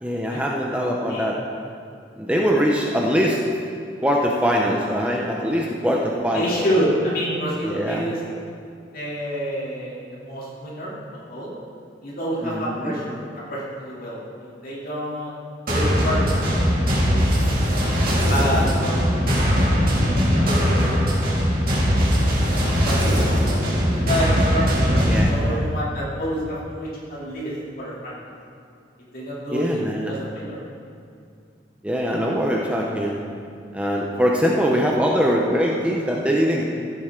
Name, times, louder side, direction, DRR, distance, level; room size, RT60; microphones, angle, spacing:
voice 1, 0.0-1.4 2.2-3.4 4.0-6.6 7.6-8.0 12.4-13.0 25.1-25.7 29.5-30.1 31.8-33.2 33.7-36.7, equal, 5° right, -2 dB, 0.7 m, -22 dB
voice 2, 6.3-8.2 8.9-10.9 11.3-11.5 12.0-13.2 13.5-15.4 15.7-16.6 17.1-17.2 18.3-19.5 20.3-21.3 21.6-21.9 22.8-23.6 23.9-28.3 29.1-29.8 30.1-30.6, equal, 50° left, -7 dB, 2.9 m, -28 dB
sound 1, 15.7-25.3, equal, 50° right, 2.4 m, -20 dB
15.0 x 7.7 x 3.8 m, 2.4 s
head